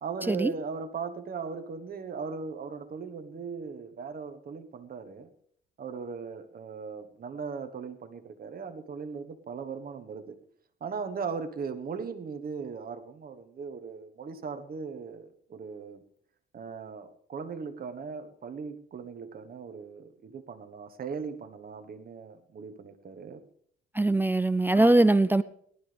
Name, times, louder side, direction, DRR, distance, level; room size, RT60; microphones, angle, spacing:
voice 1, 0.0-5.3 5.8-10.4 10.8-16.0 16.5-23.4 24.7-25.1, right 5 dB, 50° right, 1.3 m, -38 dB
voice 2, 23.9-25.4, right 2 dB, 10° right, 0.5 m, -21 dB
18.5 x 12.5 x 3.4 m
cardioid pair, 90°, 20 cm